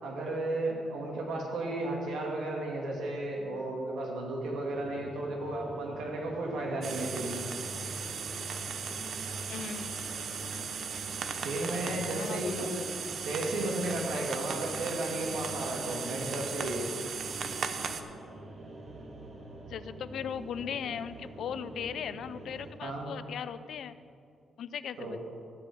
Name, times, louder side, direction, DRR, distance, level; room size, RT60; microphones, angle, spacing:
voice 1, 0.0-7.4 11.4-12.9 13.2-16.9 22.8-23.1 25.0-25.2, right 2 dB, 85° right, -1 dB, 2.4 m, -34 dB
sound 1, 4.7-22.7, right 1 dB, 45° right, 1.7 m, -47 dB
sound 2, 6.8-18.0, right 6 dB, 60° right, 0.7 m, -37 dB
voice 2, 9.5-9.9 12.2-12.7 19.7-24.0 24.6-25.2, left 8 dB, 75° left, 14 dB, 0.4 m, -38 dB
13.5 x 5.4 x 7.7 m, 2.5 s
cardioid pair, 110°, 0 cm